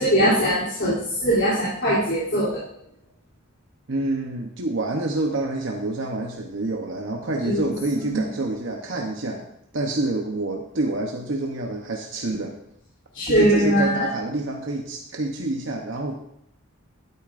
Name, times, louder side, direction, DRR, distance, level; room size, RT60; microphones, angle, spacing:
voice 1, 0.0-2.6 7.4-7.7 8.1-8.2 13.1-14.1, equal, 60° left, -10 dB, 3.1 m, -21 dB
voice 2, 3.9-9.5 9.7-12.6 13.3-16.1, right 2 dB, 65° right, 1 dB, 0.9 m, -27 dB
12.0 x 9.6 x 2.5 m, 0.76 s
head